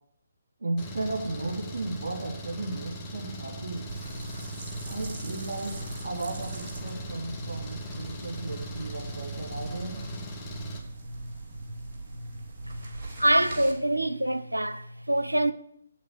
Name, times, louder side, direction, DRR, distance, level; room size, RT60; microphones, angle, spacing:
voice 1, 0.6-3.9 4.9-5.8 6.0-10.0, right 2 dB, 60° right, 3.9 m, -35 dB
Engine, 0.8-10.8, right 1 dB, 15° left, 1.9 m, -40 dB
sound 1, 3.9-13.7, right 2 dB, 30° right, 2.7 m, -39 dB
voice 2, 13.2-15.5, right 1 dB, 85° right, 0.7 m, -25 dB
8.4 x 8.4 x 9.1 m
figure-of-eight pair, 140°, 0 cm